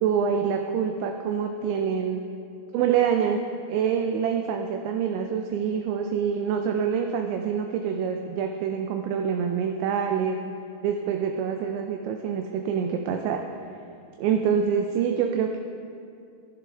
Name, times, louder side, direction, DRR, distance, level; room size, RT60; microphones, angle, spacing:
voice 1, 0.0-2.2 2.7-3.4 3.7-10.4 10.8-13.4 14.2-15.6, right 7 dB, 80° right, 4 dB, 2.8 m, -26 dB
19.0 x 11.0 x 3.4 m, 2.5 s
omnidirectional pair, 5.5 m